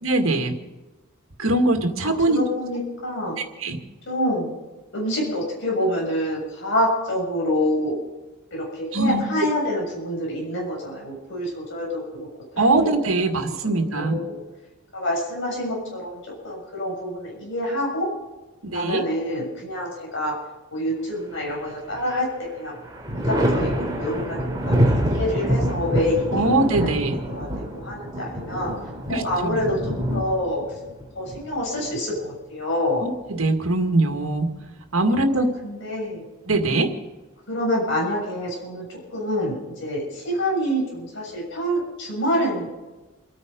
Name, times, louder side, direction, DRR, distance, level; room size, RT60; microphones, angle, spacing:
voice 1, 0.0-0.6 1.4-2.4 3.6-3.8 8.9-9.2 12.6-14.2 18.6-19.0 26.3-27.2 29.1-29.5 33.0-34.5 34.9-35.5 36.5-36.9, right 2 dB, 80° right, 5 dB, 2.0 m, -22 dB
voice 2, 2.0-3.4 4.1-4.5 4.9-8.0 8.5-12.3 12.6-13.2 13.6-14.4 14.9-18.1 18.7-20.3 20.7-22.8 23.1-27.5 27.7-28.7 29.1-30.6 31.2-33.1 35.3-36.2 37.5-42.7, left 1 dB, 60° left, -3 dB, 6.9 m, -27 dB
Thunder, 21.4-22.2 22.6-32.2 33.6-34.5, equal, 20° right, 3.0 m, -26 dB
28.5 x 9.6 x 5.2 m, 1.1 s
head